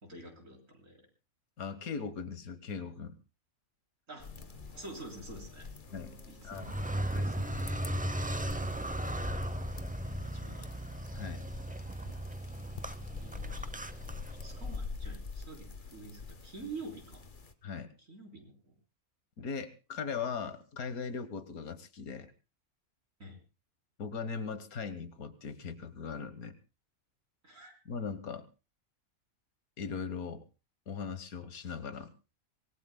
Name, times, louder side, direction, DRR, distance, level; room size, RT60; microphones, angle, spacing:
voice 1, 0.0-1.1 4.1-4.3 4.7-5.7 6.3-7.3 10.0-10.8 13.2-17.2 18.1-18.8 23.2-23.4 27.4-27.8, right 2 dB, 65° right, 1 dB, 4.3 m, -48 dB
voice 2, 1.6-3.2 5.9-6.2 6.4-6.7 7.1-7.7 11.1-11.4 17.6-17.9 19.4-22.3 24.0-26.6 27.8-28.5 29.8-30.4 30.9-32.1, left 5 dB, 90° left, 12 dB, 1.7 m, -39 dB
sound 1, 4.2-8.0, equal, 60° left, 5.5 m, -56 dB
sound 2, 4.2-17.5, left 4 dB, 40° left, 1.1 m, -46 dB
Car, 6.5-14.8, right 1 dB, 15° right, 0.3 m, -37 dB
25.0 x 19.0 x 2.2 m, 0.31 s
omnidirectional pair, 1.5 m